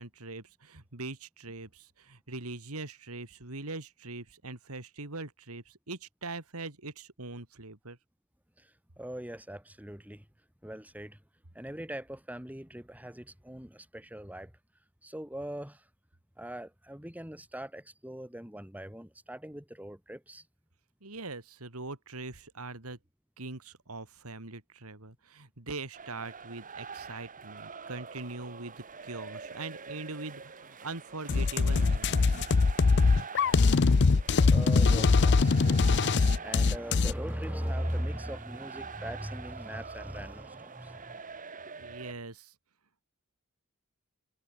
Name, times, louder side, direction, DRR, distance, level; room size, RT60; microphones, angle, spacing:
voice 1, 0.0-8.0 21.0-23.0 23.4-32.5 41.8-42.5, right 3 dB, 85° right, 2.9 m, -42 dB
voice 2, 8.6-10.3 10.6-11.2 11.5-14.6 15.0-15.9 16.4-20.5 34.2-41.2, equal, 5° right, 4.8 m, -40 dB
sound 1, 25.9-42.1, right 5 dB, 40° right, 2.2 m, -45 dB
sound 2, 31.3-37.1, left 4 dB, 55° left, 0.6 m, -22 dB
head